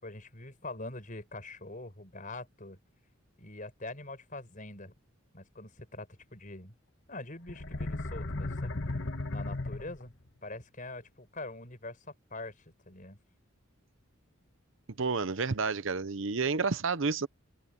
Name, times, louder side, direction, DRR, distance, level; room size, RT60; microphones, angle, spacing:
voice 1, 0.0-2.8 3.4-4.9 5.3-6.7 7.1-8.7 9.3-10.1 10.4-13.2, left 2 dB, 40° left, 5.3 m, -44 dB
sound 1, 7.5-10.3, left 2 dB, 55° left, 1.5 m, -35 dB
voice 2, 15.0-17.3, right 4 dB, 65° right, 0.8 m, -30 dB
open air
head